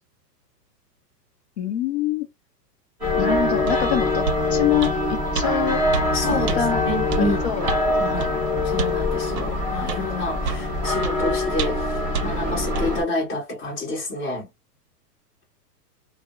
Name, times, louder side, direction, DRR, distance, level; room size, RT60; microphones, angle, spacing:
voice 1, 1.6-2.3 3.2-5.8 6.5-6.8 7.2-8.3, left 10 dB, 45° left, 0.6 m, -25 dB
sound 1, 3.0-13.0, left 2 dB, ahead, 0.5 m, -24 dB
sound 2, 3.7-3.8 4.3-4.4 4.8-5.0 5.4-5.5 5.9-6.1 6.5-6.6 7.1-7.3 7.7-7.9 8.2-8.3 8.8-9.0 9.4-9.5 9.9-10.0 10.4-10.7 11.0-11.2 11.6-11.9 12.1-12.3 12.8-12.9, right 6 dB, 60° right, 0.7 m, -28 dB
voice 2, 6.1-7.5 8.0-8.3 8.6-14.5, left 2 dB, 20° left, 1.3 m, -29 dB
2.6 x 2.1 x 2.4 m
hypercardioid pair, 165°, 49 cm